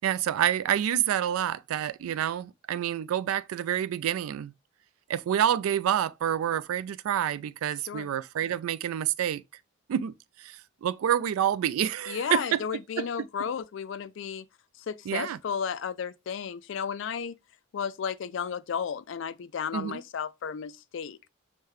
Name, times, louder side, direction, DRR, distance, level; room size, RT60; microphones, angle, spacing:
voice 1, 0.0-4.5 5.1-9.4 9.9-12.6 13.0-13.1 15.1-15.4 19.7-20.0, right 10 dB, 85° right, 0.3 m, -28 dB
voice 2, 12.1-14.5 14.8-17.4 17.7-21.2, left 7 dB, 60° left, 0.3 m, -33 dB
6.4 x 2.2 x 3.1 m
head